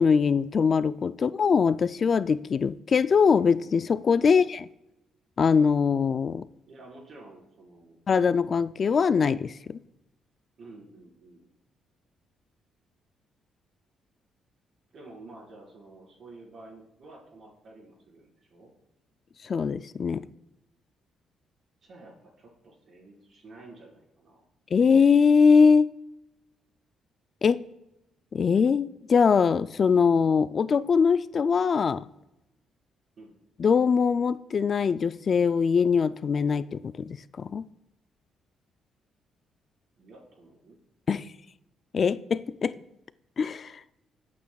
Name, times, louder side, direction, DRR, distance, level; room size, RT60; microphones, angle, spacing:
voice 1, 0.0-4.6 5.4-6.5 8.1-9.5 19.4-20.2 24.7-25.9 27.4-27.6 28.3-32.0 33.6-37.7 41.1-41.2 41.9-42.7 43.4-43.7, left 6 dB, 45° left, 0.3 m, -22 dB
voice 2, 6.6-8.0 10.6-11.4 14.9-18.7 21.8-24.4 33.2-33.4 40.0-40.8, right 2 dB, 55° right, 4.5 m, -50 dB
21.5 x 8.4 x 2.3 m
cardioid pair, 90°, 0 cm